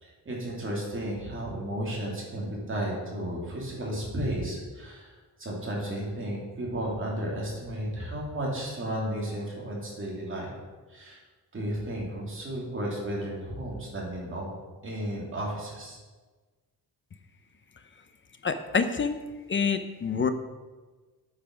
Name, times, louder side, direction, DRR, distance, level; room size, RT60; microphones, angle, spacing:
voice 1, 0.0-10.5 10.9-11.2 11.5-14.5 14.8-16.0, right 1 dB, 30° right, -3 dB, 2.5 m, -33 dB
voice 2, 18.4-19.2 19.5-20.3, left 5 dB, 30° left, 10 dB, 0.5 m, -26 dB
8.5 x 5.6 x 5.9 m, 1.3 s
wide cardioid pair, 165°, 39 cm